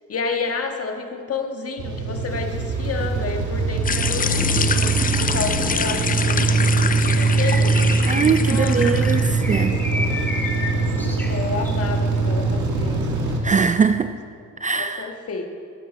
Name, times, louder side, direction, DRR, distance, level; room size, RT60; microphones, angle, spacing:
voice 1, 0.1-4.9 5.2-7.7 8.4-9.0 9.5-10.2 10.9-13.1 14.7-15.5, left 4 dB, 50° left, 4 dB, 1.5 m, -30 dB
sound 1, 1.8-13.4, right 3 dB, 65° right, 1.9 m, -22 dB
sound 2, 3.8-9.4, left 5 dB, 25° left, 0.6 m, -26 dB
Bird, 6.9-11.9, left 2 dB, 5° left, 1.6 m, -32 dB
voice 2, 8.0-9.8 13.4-14.1 14.6-15.1, right 5 dB, 25° right, 10 dB, 0.4 m, -21 dB
13.5 x 9.3 x 4.2 m, 2.3 s
cardioid pair, 80°, 32 cm